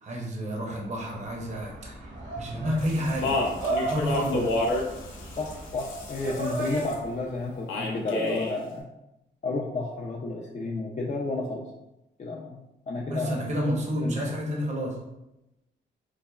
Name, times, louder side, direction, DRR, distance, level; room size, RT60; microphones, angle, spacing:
voice 1, 0.0-3.4 3.8-4.5 13.1-15.0, equal, 35° right, -1 dB, 0.6 m, -30 dB
sound 1, 1.0-7.3, right 2 dB, 70° right, 1.0 m, -35 dB
Speech, 2.8-7.0 7.7-8.5, left 2 dB, 85° left, 0.5 m, -30 dB
voice 2, 5.3-8.8 9.4-11.7 12.2-12.6 12.9-13.4 14.0-14.4, left 3 dB, 35° left, -2 dB, 0.4 m, -32 dB
3.2 x 2.0 x 2.3 m, 0.91 s
cardioid pair, 65°, 20 cm